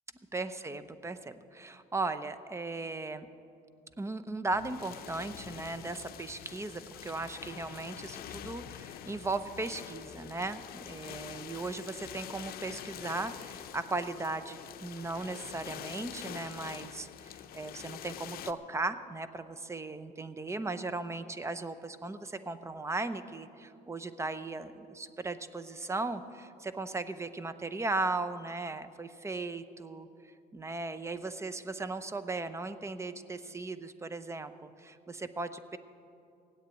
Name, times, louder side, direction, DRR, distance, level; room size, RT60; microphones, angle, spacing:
voice 1, 0.3-3.3 4.0-30.1 30.5-35.8, right 3 dB, 15° right, 12 dB, 0.7 m, -37 dB
sound 1, 4.5-18.5, left 10 dB, 60° left, 0.7 m, -45 dB
16.5 x 8.2 x 9.2 m, 2.6 s
cardioid pair, 110°, 17 cm